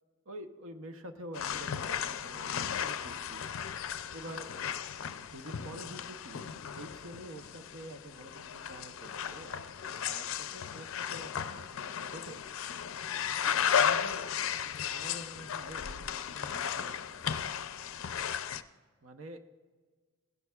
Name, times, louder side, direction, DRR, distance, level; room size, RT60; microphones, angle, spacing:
voice 1, 0.3-3.5 4.1-9.7 10.1-12.4 13.7-14.4 14.9-17.2 19.0-19.4, right 1 dB, 70° right, 7 dB, 0.8 m, -48 dB
sound 1, 1.3-18.6, left 8 dB, 70° left, 0.4 m, -35 dB
16.5 x 11.0 x 2.4 m, 1.5 s
head